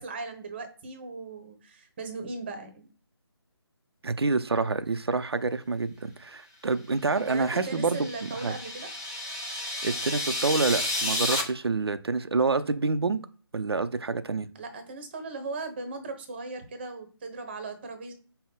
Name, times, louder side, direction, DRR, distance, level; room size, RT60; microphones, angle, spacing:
voice 1, 0.0-2.9 6.7-6.8 7.1-8.9 14.5-18.1, right 3 dB, 25° right, 0.9 m, -38 dB
voice 2, 4.0-8.5 9.8-13.2 13.5-14.5, right 3 dB, 70° right, 0.5 m, -27 dB
sound 1, 7.3-11.4, left 1 dB, 10° left, 0.3 m, -32 dB
5.4 x 2.1 x 3.8 m
figure-of-eight pair, 155°, 14 cm